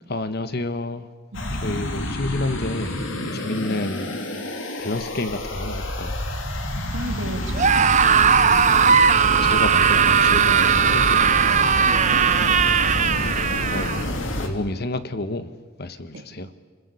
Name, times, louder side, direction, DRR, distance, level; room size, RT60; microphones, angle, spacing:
voice 1, 0.1-1.1 1.6-4.1 4.8-6.1 9.2-11.2 13.2-14.0 14.4-15.5 15.8-16.5, left 2 dB, 55° left, 11 dB, 1.4 m, -30 dB
sound 1, 1.3-14.5, left 1 dB, 75° left, 2.9 m, -28 dB
voice 2, 6.9-8.0 10.9-11.0 11.9-12.3 16.1-16.3, right 2 dB, 75° right, 5 dB, 2.7 m, -33 dB
Screaming, 7.5-14.0, right 7 dB, 35° right, 0.8 m, -18 dB
28.0 x 20.0 x 8.5 m, 1.4 s
head